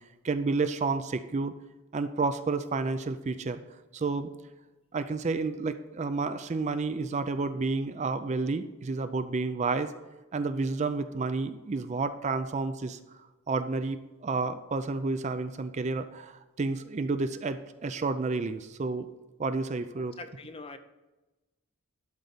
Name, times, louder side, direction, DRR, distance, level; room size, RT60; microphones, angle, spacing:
voice 1, 0.2-1.5 1.9-3.6 3.9-4.3 4.9-9.9 10.3-13.0 13.5-19.1 19.4-20.2, right 3 dB, 30° right, 11 dB, 0.3 m, -30 dB
voice 2, 20.2-20.8, left 3 dB, 25° left, 9 dB, 0.5 m, -42 dB
11.5 x 4.0 x 6.7 m, 1.1 s
head